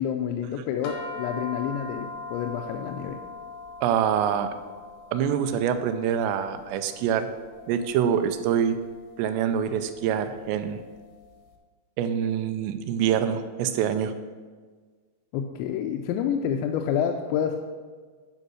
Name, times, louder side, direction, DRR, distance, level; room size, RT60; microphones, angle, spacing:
voice 1, 0.0-3.2 15.3-17.6, left 8 dB, 85° left, 4 dB, 2.9 m, -28 dB
sound 1, 0.8-11.3, left 3 dB, 70° left, 2.2 m, -42 dB
voice 2, 3.8-4.5 5.1-7.3 7.7-8.8 9.2-10.8 12.0-14.1, right 8 dB, 80° right, 9 dB, 2.8 m, -25 dB
10.5 x 5.4 x 6.2 m, 1.5 s
omnidirectional pair, 5.2 m